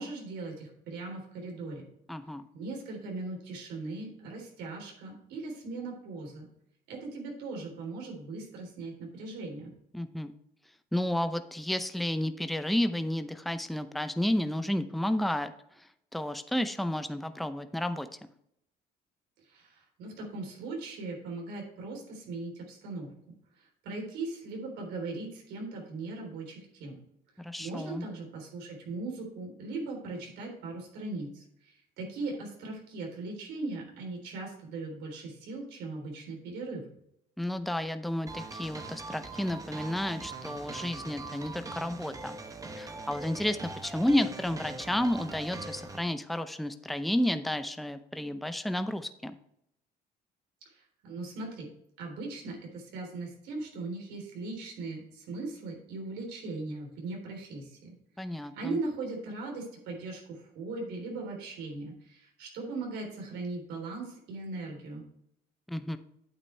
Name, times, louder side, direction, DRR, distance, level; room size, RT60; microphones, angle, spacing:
voice 1, 0.0-1.8 2.5-6.5 6.9-9.7 19.5-27.0 27.6-36.8 50.7-51.7 52.0-57.9 58.2-65.0, right 3 dB, 85° right, 0 dB, 3.6 m, -39 dB
voice 2, 2.1-2.4 9.9-10.3 10.9-18.1 27.4-28.1 37.4-42.4 42.8-49.3 58.2-58.8 65.7-66.0, left 1 dB, ahead, 9 dB, 0.6 m, -31 dB
sound 1, 38.3-46.0, right 3 dB, 20° right, 0.9 m, -42 dB
8.7 x 8.1 x 3.3 m, 0.74 s
cardioid pair, 110°, 17 cm